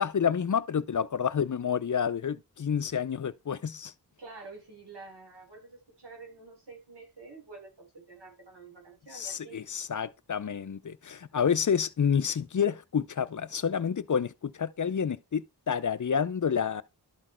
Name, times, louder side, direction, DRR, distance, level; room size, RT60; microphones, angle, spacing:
voice 1, 0.0-3.9 9.1-16.8, left 7 dB, 50° left, 0.5 m, -29 dB
voice 2, 4.2-9.6, right 3 dB, 85° right, 3.9 m, -48 dB
12.0 x 4.3 x 4.4 m
wide cardioid pair, 85°, 40 cm